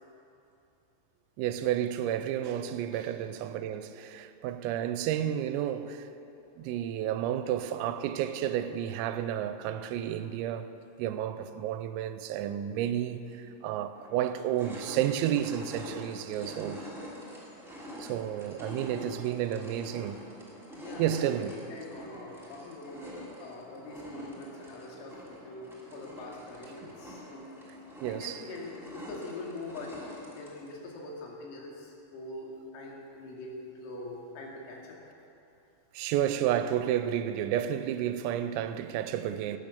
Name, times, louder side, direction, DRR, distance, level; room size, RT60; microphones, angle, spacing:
voice 1, 1.4-6.1 6.6-10.7 11.0-16.8 18.0-20.2 21.0-21.7 28.0-28.4 35.9-39.6, right 11 dB, 90° right, 3.3 m, -31 dB
sound 1, 13.3-13.4 13.9-30.8, equal, ahead, 1.4 m, -46 dB
voice 2, 16.3-16.7 18.9-19.5 20.7-23.1 23.4-27.6 28.1-35.0, left 2 dB, 85° left, 5.0 m, -44 dB
17.5 x 10.5 x 7.0 m
omnidirectional pair, 6.0 m